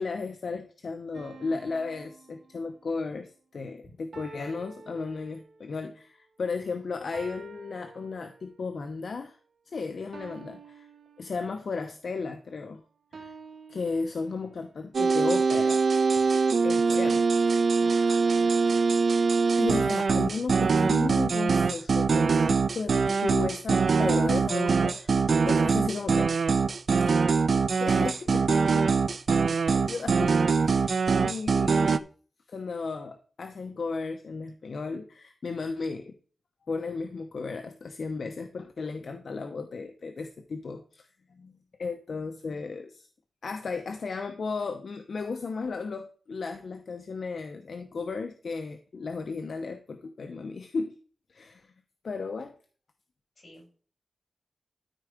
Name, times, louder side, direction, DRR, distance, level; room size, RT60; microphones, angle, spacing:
voice 1, 0.0-9.4 9.7-10.9 11.2-12.8 13.1-13.3 13.7-15.8 16.6-17.3 19.6-26.3 27.0-27.1 27.8-28.9 29.3-31.0 31.2-32.0 32.5-36.2 36.7-41.5 41.8-43.1 43.4-50.9 51.3-51.7 52.0-52.5, left 4 dB, 65° left, 6 dB, 0.9 m, -35 dB
sound 1, 1.1-3.1 4.1-5.8 7.1-8.7 10.1-11.8 13.1-14.7 16.1-18.5, right 4 dB, 85° right, 2.3 m, -50 dB
sound 2, 14.9-32.0, right 4 dB, 60° right, 0.5 m, -23 dB
voice 2, 17.8-19.0 53.4-53.8, left 1 dB, 40° left, 1 dB, 5.7 m, -51 dB
13.0 x 4.6 x 5.1 m, 0.42 s
wide cardioid pair, 115°, 0 cm